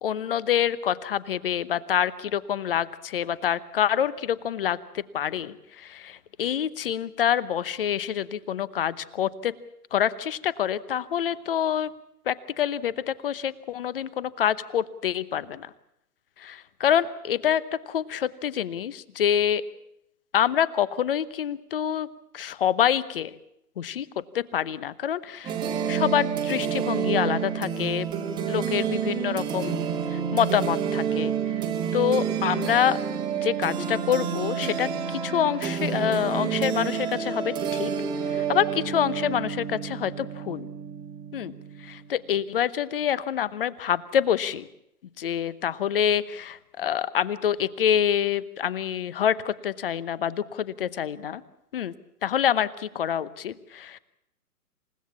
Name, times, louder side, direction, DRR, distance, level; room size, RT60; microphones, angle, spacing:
voice 1, 0.0-9.5 9.9-11.9 12.3-15.7 16.4-19.6 20.3-22.1 22.3-23.3 23.8-24.1 24.3-25.5 25.9-28.1 28.5-29.8 30.1-31.3 31.9-33.0 33.4-37.9 38.3-40.7 41.3-41.5 41.8-44.7 45.2-51.4 51.7-51.9 52.2-54.0, left 9 dB, 35° left, 18 dB, 1.0 m, -26 dB
sound 1, 25.4-42.1, right 7 dB, 10° right, 1.4 m, -29 dB
28.0 x 16.5 x 7.2 m, 0.80 s
hypercardioid pair, 145°, 46 cm